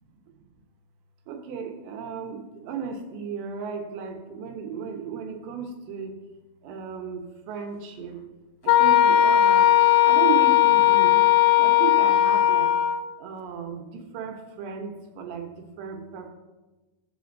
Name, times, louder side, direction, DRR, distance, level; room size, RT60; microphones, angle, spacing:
voice 1, 1.3-6.1 6.6-8.2 8.6-9.7 10.1-11.3 11.6-12.7 13.2-15.5 15.8-16.3, right 6 dB, 85° right, 4 dB, 3.3 m, -34 dB
Wind instrument woodwind instrument, 8.7-13.0, left 11 dB, 90° left, 2.8 m, -18 dB
18.0 x 7.5 x 2.7 m, 1.2 s
omnidirectional pair, 4.9 m